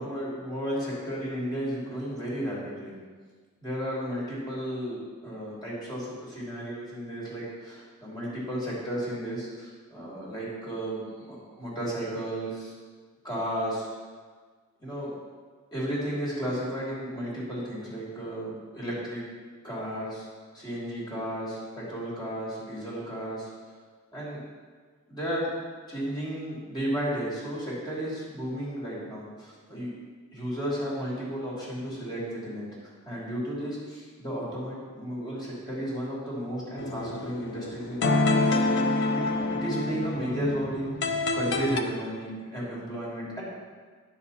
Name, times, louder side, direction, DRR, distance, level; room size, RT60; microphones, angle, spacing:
voice 1, 0.0-3.0 3.6-12.7 13.2-13.9 14.8-15.1 15.7-19.2 19.6-20.3 20.5-23.5 24.1-24.4 25.1-25.5 25.9-38.3 39.2-39.3 39.5-43.4, equal, 20° left, -7 dB, 3.2 m, -33 dB
sound 1, 36.8-41.8, left 2 dB, 55° left, 0.7 m, -27 dB
10.5 x 6.9 x 4.2 m, 1.5 s
head